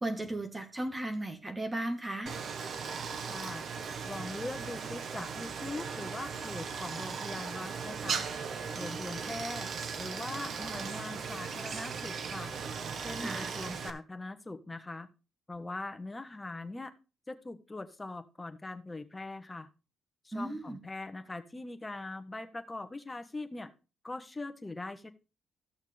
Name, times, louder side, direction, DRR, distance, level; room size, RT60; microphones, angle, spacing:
voice 1, 0.0-2.4 13.2-13.5 20.3-20.8, right 1 dB, 20° right, 4 dB, 1.6 m, -35 dB
Stream, 2.3-13.9, right 6 dB, 60° right, 1.2 m, -38 dB
voice 2, 3.3-3.6 4.1-8.3 8.8-9.7 10.0-12.5 13.0-15.1 15.5-16.9 17.3-19.7 20.2-23.7 24.0-25.1, left 2 dB, 15° left, 8 dB, 1.3 m, -41 dB
14.0 x 6.4 x 3.4 m, 0.33 s
cardioid pair, 90°, 0 cm